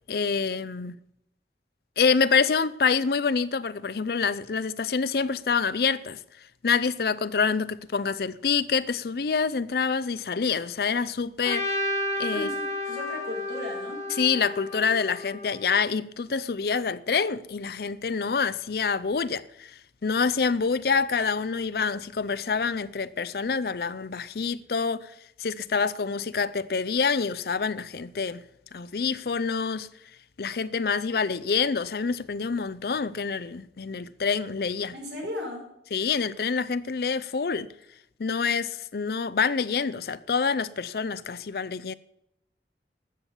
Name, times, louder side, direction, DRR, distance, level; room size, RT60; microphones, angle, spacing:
voice 1, 0.1-1.0 2.0-6.2 6.6-11.7 12.2-12.5 14.2-25.1 25.4-28.4 28.7-29.9 30.4-34.9 35.9-37.7 38.2-41.9, left 5 dB, 55° left, 0.5 m, -26 dB
Trumpet, 11.4-15.6, equal, 15° left, 2.0 m, -31 dB
voice 2, 12.8-14.0 34.9-35.7, left 1 dB, 80° right, 6.1 m, -36 dB
13.0 x 7.2 x 8.2 m
head